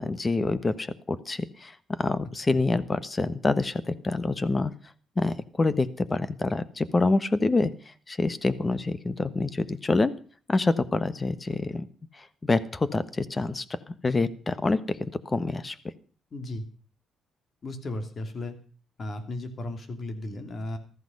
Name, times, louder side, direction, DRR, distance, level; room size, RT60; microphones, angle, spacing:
voice 1, 0.0-4.7 5.2-7.7 8.1-10.1 10.5-11.9 12.2-15.7, left 3 dB, 25° left, 15 dB, 1.2 m, -26 dB
voice 2, 16.3-16.6 17.6-18.5 19.0-20.8, left 1 dB, 45° left, 8 dB, 3.0 m, -35 dB
14.5 x 14.0 x 5.4 m, 0.40 s
cardioid pair, 90°, 0 cm